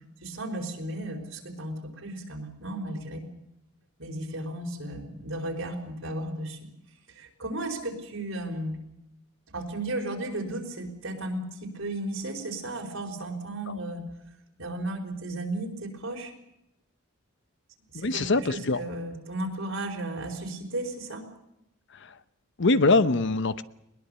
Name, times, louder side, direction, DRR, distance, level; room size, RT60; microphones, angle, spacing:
voice 1, 0.2-3.3 4.0-6.6 7.2-8.8 9.5-14.1 14.6-16.3 17.9-21.2, right 1 dB, 70° right, 3 dB, 4.8 m, -34 dB
voice 2, 17.9-18.8 22.6-23.6, left 3 dB, 60° left, 14 dB, 0.9 m, -23 dB
21.5 x 21.0 x 6.9 m, 0.86 s
head